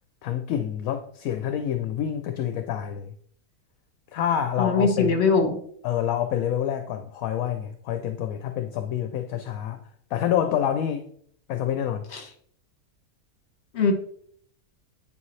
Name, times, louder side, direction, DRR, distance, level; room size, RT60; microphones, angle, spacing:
voice 1, 0.2-3.1 4.1-5.2 5.8-9.8 10.1-11.1 11.5-12.0, left 10 dB, 70° left, 8 dB, 1.0 m, -27 dB
voice 2, 4.6-5.6 12.1-12.3 13.7-13.9, left 4 dB, 50° left, 5 dB, 1.4 m, -21 dB
10.0 x 5.1 x 3.2 m, 0.63 s
omnidirectional pair, 1.6 m